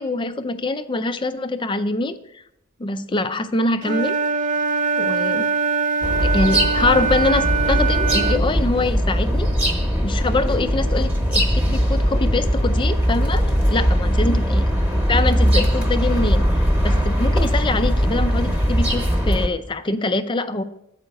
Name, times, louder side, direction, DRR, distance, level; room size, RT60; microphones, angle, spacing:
voice 1, 0.0-2.2 2.8-4.2 5.0-5.5 6.3-9.5 10.0-14.6 15.1-16.5 16.8-20.6, left 2 dB, 25° left, 11 dB, 0.4 m, -24 dB
Wind instrument woodwind instrument, 3.8-8.5, right 4 dB, 35° right, 0.5 m, -22 dB
sound 1, 6.0-19.5, equal, 10° right, 1.1 m, -20 dB
7.8 x 4.9 x 6.4 m, 0.80 s
head